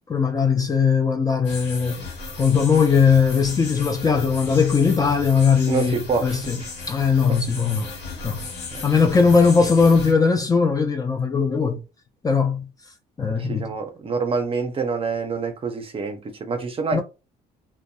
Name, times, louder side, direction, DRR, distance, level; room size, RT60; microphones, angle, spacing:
voice 1, 0.1-2.0 2.4-6.6 6.9-7.9 8.2-8.4 8.8-11.8 12.2-12.6 13.2-13.7 16.9-17.0, left 5 dB, 20° left, 0.5 m, -19 dB
sound 1, 1.4-10.1, left 3 dB, 70° left, 1.1 m, -35 dB
voice 2, 5.7-6.5 7.3-7.4 8.7-8.8 13.4-17.0, right 5 dB, 35° right, 0.6 m, -26 dB
2.5 x 2.2 x 2.3 m
cardioid pair, 110°, 17 cm